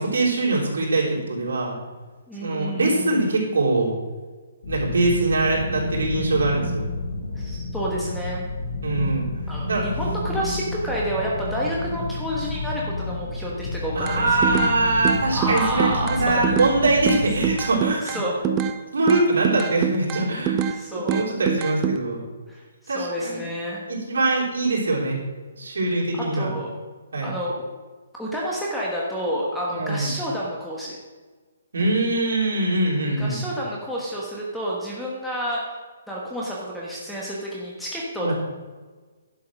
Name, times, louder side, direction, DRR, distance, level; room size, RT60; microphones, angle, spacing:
voice 1, 0.0-1.8 2.4-3.9 4.7-6.9 8.8-9.3 9.7-9.9 13.9-18.2 18.9-20.7 20.9-22.2 22.9-23.4 23.9-25.2 25.6-26.5 27.1-27.3 29.7-30.1 31.7-33.4 38.2-38.3, right 2 dB, 80° right, -4 dB, 3.7 m, -23 dB
voice 2, 2.3-3.1 7.4-8.5 9.5-14.5 15.3-16.6 18.0-18.3 20.7-21.3 22.5-23.9 25.9-26.0 26.3-26.7 27.2-27.5 28.2-31.0 33.2-35.6 36.1-38.3, equal, ahead, -5 dB, 1.2 m, -29 dB
sound 1, 4.6-17.5, left 2 dB, 65° left, 3.6 m, -30 dB
sound 2, 14.1-14.7 15.0-16.8 17.1-18.8 19.1-20.8 21.1-22.0, right 8 dB, 20° right, 0.5 m, -25 dB
11.0 x 5.7 x 6.3 m, 1.4 s
hypercardioid pair, 165°, 0 cm